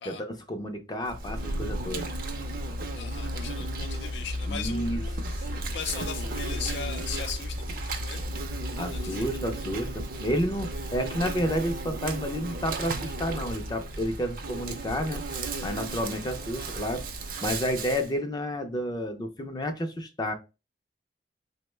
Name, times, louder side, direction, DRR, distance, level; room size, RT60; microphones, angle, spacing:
voice 1, 0.1-2.1 4.5-5.0 8.8-15.2 15.6-17.0 17.4-20.3, equal, 25° left, 0.4 m, -30 dB
Insect, 1.1-18.1, right 1 dB, 55° right, 0.5 m, -34 dB
voice 2, 2.9-8.3 8.9-9.3, left 7 dB, 85° left, 0.4 m, -38 dB
3.6 x 2.1 x 3.1 m
head